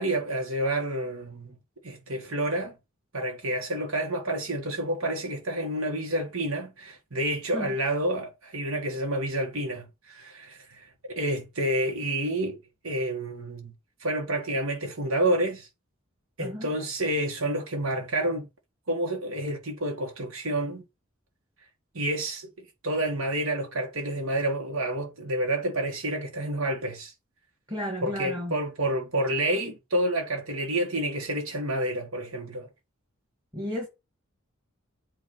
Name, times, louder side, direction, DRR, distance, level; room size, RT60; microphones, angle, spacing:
voice 1, 0.0-1.6 1.8-2.7 3.1-12.6 12.8-13.7 14.0-15.7 16.4-18.5 18.9-20.8 21.9-27.1 28.0-32.7, right 1 dB, 85° right, 1.6 m, -29 dB
voice 2, 27.7-28.6 33.5-33.9, equal, 20° right, 1.9 m, -33 dB
8.1 x 2.8 x 5.4 m
head